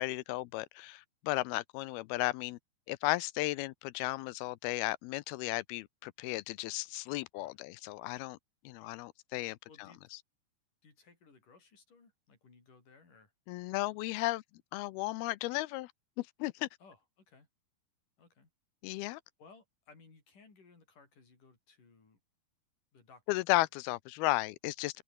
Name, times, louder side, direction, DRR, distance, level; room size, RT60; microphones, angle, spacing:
voice 1, 0.0-2.6 2.9-8.4 8.7-9.6 13.5-14.4 14.7-15.9 16.2-16.7 18.8-19.2 23.3-25.0, left 19 dB, 85° left, 2.6 m, -34 dB
voice 2, 9.7-10.0 10.8-13.3 16.8-17.5 18.2-18.5 19.4-22.2 22.9-23.4, left 4 dB, 55° left, 7.7 m, -60 dB
open air
omnidirectional pair, 4.4 m